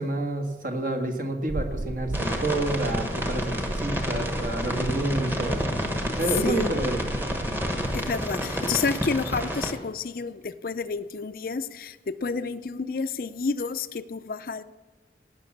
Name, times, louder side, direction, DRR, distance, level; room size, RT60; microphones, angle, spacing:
voice 1, 0.0-5.6 6.2-7.0, right 2 dB, 50° right, 4 dB, 1.5 m, -28 dB
sound 1, 1.5-8.1, right 2 dB, 75° right, 0.6 m, -36 dB
sound 2, 2.1-9.7, equal, 10° right, 1.2 m, -30 dB
voice 2, 7.9-14.6, left 4 dB, 55° left, 12 dB, 0.5 m, -30 dB
18.0 x 6.1 x 7.2 m, 1.3 s
head